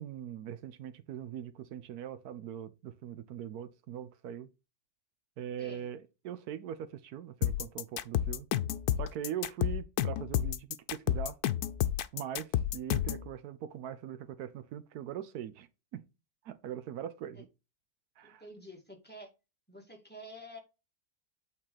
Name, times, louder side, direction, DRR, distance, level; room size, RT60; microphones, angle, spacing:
voice 1, 0.0-4.5 5.4-8.5 9.0-11.4 12.1-16.0 16.4-17.5 18.2-18.4, right 10 dB, 80° right, 1.2 m, -41 dB
voice 2, 5.6-5.9 17.3-17.4 18.2-19.3 19.7-20.6, equal, 5° left, 2.3 m, -49 dB
sound 1, 7.4-13.3, left 12 dB, 85° left, 1.2 m, -30 dB
8.8 x 4.1 x 4.0 m
omnidirectional pair, 1.6 m